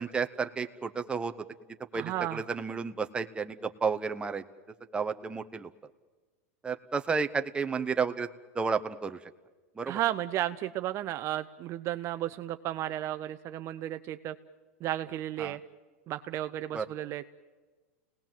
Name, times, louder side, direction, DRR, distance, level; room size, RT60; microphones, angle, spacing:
voice 1, 0.0-1.3 1.9-4.4 4.9-5.7 6.6-8.3 8.5-9.2 9.8-10.0 15.4-15.6 16.7-16.9, right 5 dB, 15° right, 7 dB, 0.9 m, -31 dB
voice 2, 1.9-2.4 9.9-14.3 14.8-15.6 16.1-17.2, right 13 dB, 40° right, 10 dB, 0.7 m, -33 dB
29.5 x 18.5 x 7.6 m, 1.3 s
supercardioid pair, 125°, 8 cm